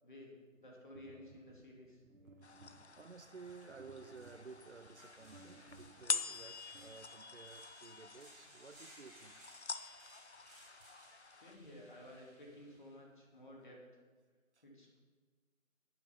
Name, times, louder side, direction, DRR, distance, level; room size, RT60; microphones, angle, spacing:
voice 1, 0.0-2.0 2.6-2.7 11.3-13.9 14.6-15.0, left 1 dB, 35° left, 2.6 m, -54 dB
sound 1, 0.9-7.5, right 2 dB, 75° right, 1.2 m, -61 dB
sound 2, 2.4-11.6, left 4 dB, 55° left, 0.7 m, -46 dB
voice 2, 2.9-9.4 14.6-14.7, right 5 dB, 55° right, 0.6 m, -54 dB
sound 3, 3.4-12.9, equal, ahead, 4.3 m, -62 dB
10.5 x 10.0 x 5.7 m
figure-of-eight pair, 170°, 41 cm